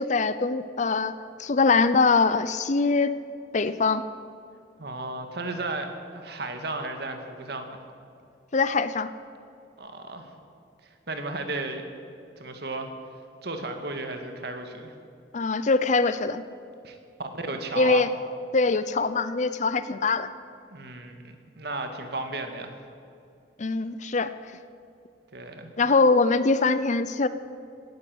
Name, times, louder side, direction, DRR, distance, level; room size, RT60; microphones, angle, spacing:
voice 1, 0.0-3.1 3.5-4.0 8.5-9.1 15.3-16.4 17.8-18.1 18.5-20.3 23.6-24.3 25.8-27.3, left 4 dB, 40° left, 14 dB, 0.6 m, -23 dB
voice 2, 4.8-7.8 9.8-10.3 11.1-11.8 12.4-12.9 13.4-14.9 16.8-18.1 20.7-22.8 25.3-25.7, right 2 dB, 60° right, 5 dB, 1.9 m, -34 dB
18.0 x 10.5 x 7.8 m, 2.4 s
head